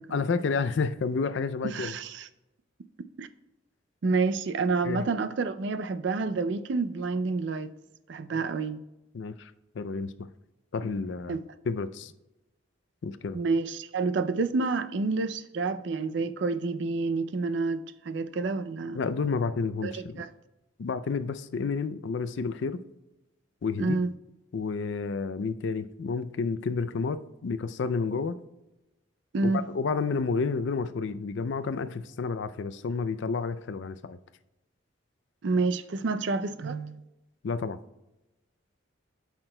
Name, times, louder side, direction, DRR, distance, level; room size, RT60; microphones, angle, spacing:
voice 1, 0.1-1.9 4.8-5.0 9.1-9.5 9.8-10.1 10.7-11.4 11.7-12.1 13.0-13.4 18.9-20.2 20.8-22.8 23.6-24.0 24.5-28.4 29.4-34.2 37.4-37.8, left 4 dB, 60° left, 0.4 m, -30 dB
voice 2, 1.7-2.3 3.2-3.3 4.0-7.7 8.1-8.8 11.3-11.4 13.3-19.0 19.8-20.3 23.8-24.1 29.3-29.7 35.4-37.0, right 3 dB, 60° right, 0.4 m, -29 dB
13.0 x 5.8 x 2.2 m
head